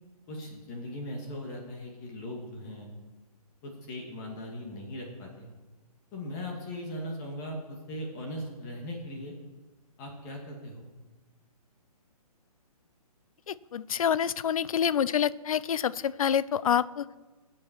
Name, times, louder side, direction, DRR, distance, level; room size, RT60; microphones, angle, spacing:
voice 1, 0.3-2.9 3.6-5.5 6.1-9.3 10.0-10.8, left 1 dB, 30° left, 0 dB, 2.3 m, -39 dB
voice 2, 13.5-17.1, left 8 dB, 65° left, 19 dB, 0.5 m, -27 dB
21.5 x 7.8 x 4.6 m, 1.2 s
hypercardioid pair, 145°, 20 cm